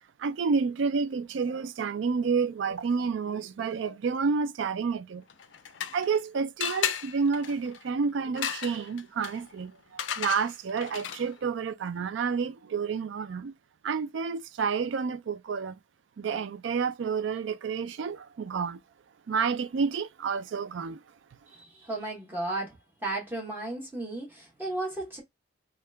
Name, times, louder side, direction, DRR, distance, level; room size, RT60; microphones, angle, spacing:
voice 1, 0.2-5.2 5.9-9.7 10.2-13.5 13.8-15.8 16.2-18.8 19.3-21.0, right 5 dB, 75° right, 0.4 m, -29 dB
sound 1, 5.3-6.2 6.6-11.4, left 8 dB, 70° left, 0.4 m, -35 dB
voice 2, 21.5-25.2, right 2 dB, 10° right, 1.0 m, -34 dB
2.8 x 2.3 x 3.3 m
head